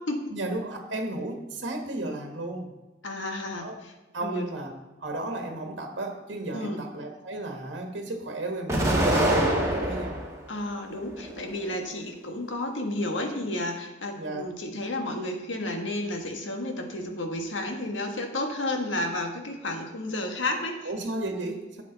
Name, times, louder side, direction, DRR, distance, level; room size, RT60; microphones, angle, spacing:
voice 1, 0.3-2.7 3.6-3.8 4.1-4.7 5.0-10.2 14.2-14.5 20.8-21.8, right 2 dB, 75° right, 3 dB, 1.4 m, -33 dB
voice 2, 3.0-3.9 4.2-4.4 6.5-6.8 10.5-20.9, left 1 dB, 90° left, 3 dB, 1.5 m, -32 dB
Explosion, 8.7-10.3 10.9-11.8, right 1 dB, 15° right, 2.0 m, -25 dB
11.0 x 8.1 x 4.0 m, 1.1 s
head